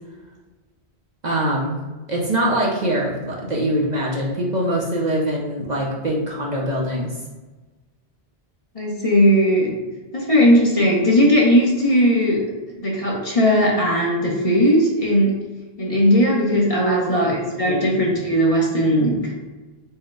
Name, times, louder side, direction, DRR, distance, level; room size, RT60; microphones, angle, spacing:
voice 1, 1.2-1.8 2.1-7.2 16.9-17.3 17.7-17.9, right 1 dB, 45° right, -3 dB, 0.7 m, -23 dB
voice 2, 8.7-9.7 10.1-12.5 12.8-15.4 15.8-19.3, equal, 35° left, -4 dB, 1.0 m, -18 dB
4.6 x 2.2 x 4.6 m, 1.2 s
omnidirectional pair, 1.1 m